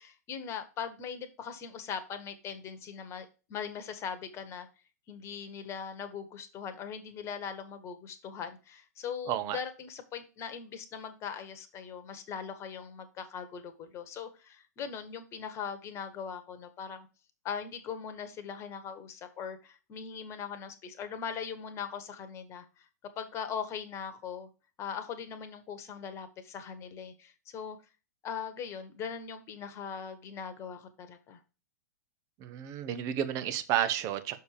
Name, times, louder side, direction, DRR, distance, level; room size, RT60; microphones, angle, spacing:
voice 1, 0.0-4.7 5.1-17.1 17.4-22.6 23.2-24.5 24.8-27.8 28.2-31.4, left 7 dB, 30° left, 10 dB, 1.5 m, -40 dB
voice 2, 9.3-9.6 32.4-34.4, right 11 dB, 35° right, 11 dB, 1.0 m, -31 dB
6.6 x 4.7 x 5.0 m, 0.32 s
hypercardioid pair, 110°, 9 cm